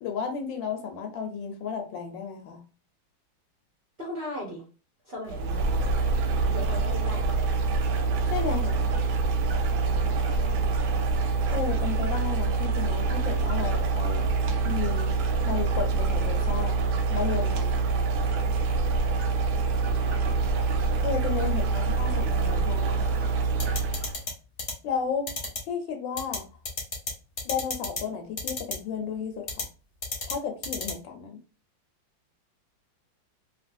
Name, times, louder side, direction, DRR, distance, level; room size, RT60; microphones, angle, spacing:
voice 1, 0.0-2.6 8.3-8.8 11.5-14.2 14.6-15.1 15.5-16.8 17.1-17.8 21.0-23.3 24.8-25.3 25.7-26.4 27.4-29.7 30.2-31.4, left 6 dB, 75° left, 4 dB, 1.3 m, -33 dB
voice 2, 4.0-4.6 5.0-5.9 6.5-7.6 10.2-10.7 21.6-21.8, left 1 dB, 50° right, -4 dB, 0.7 m, -38 dB
sound 1, 5.3-24.2, right 4 dB, 90° right, 0.8 m, -25 dB
sound 2, 23.6-24.3 24.6-24.7 25.3-25.6 26.2-26.4 26.7-27.1 27.4-28.0 28.4-28.7 29.5-29.6 30.0-30.3 30.6-30.9, left 3 dB, 35° left, 0.9 m, -31 dB
3.0 x 2.8 x 2.5 m, 0.34 s
omnidirectional pair, 2.2 m